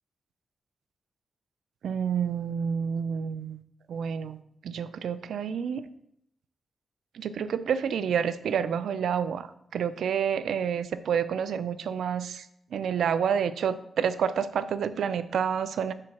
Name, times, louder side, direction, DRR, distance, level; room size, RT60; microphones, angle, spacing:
voice 1, 1.8-3.6 3.9-4.4 4.6-5.9 7.1-12.5 12.7-15.9, right 7 dB, 85° right, 13 dB, 0.3 m, -29 dB
4.8 x 4.2 x 5.7 m, 0.73 s
cardioid pair, 90°, 0 cm